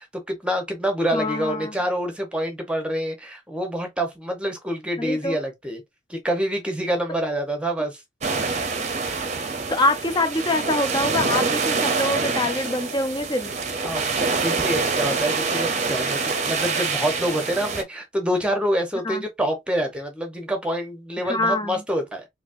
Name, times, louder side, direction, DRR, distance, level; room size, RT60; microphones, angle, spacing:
voice 1, 0.0-5.8 6.1-8.0 13.8-22.3, equal, 5° right, 1.0 m, -26 dB
voice 2, 1.1-1.8 5.0-5.4 9.7-13.5 19.0-19.2 21.2-21.8, left 2 dB, 25° left, 0.6 m, -25 dB
sound 1, 8.2-17.8, right 4 dB, 40° right, 0.7 m, -25 dB
4.0 x 2.8 x 2.6 m
head